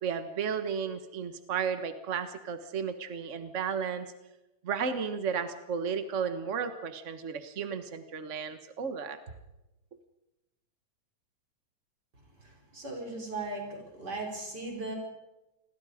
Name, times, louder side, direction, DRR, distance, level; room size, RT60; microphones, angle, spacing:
voice 1, 0.0-4.1 4.6-9.2, right 6 dB, 55° right, 9 dB, 0.8 m, -33 dB
voice 2, 12.7-14.9, right 2 dB, 35° right, 1 dB, 5.6 m, -37 dB
28.5 x 21.0 x 5.0 m, 0.96 s
omnidirectional pair, 3.4 m